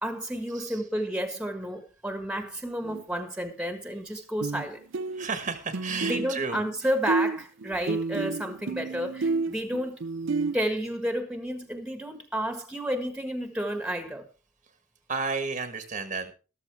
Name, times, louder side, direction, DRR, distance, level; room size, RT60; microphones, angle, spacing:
voice 1, 0.0-4.8 6.1-10.0 10.5-14.3, equal, 5° right, 1.5 m, -31 dB
sound 1, 2.8-3.0 4.4-4.7 4.9-6.8 7.1-10.6, right 3 dB, 80° right, 0.6 m, -30 dB
voice 2, 5.1-6.6 15.1-16.3, right 4 dB, 40° right, 1.3 m, -32 dB
13.5 x 13.0 x 3.4 m
head